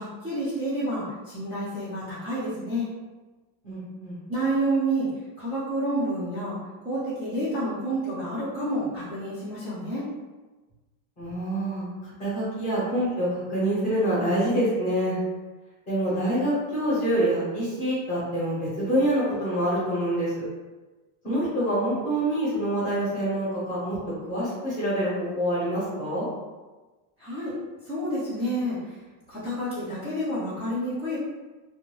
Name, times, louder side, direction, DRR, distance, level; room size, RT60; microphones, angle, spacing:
voice 1, 0.0-2.9 4.3-5.1 5.4-10.1 27.2-27.5 27.8-28.9 29.3-31.2, right 1 dB, 15° right, -16 dB, 0.6 m, -29 dB
voice 2, 3.6-4.2 11.2-11.9 12.2-15.2 15.9-20.4 21.2-24.0 24.3-26.3, right 1 dB, 15° left, -9 dB, 0.9 m, -26 dB
2.5 x 2.1 x 3.1 m, 1.2 s
cardioid pair, 175°, 47 cm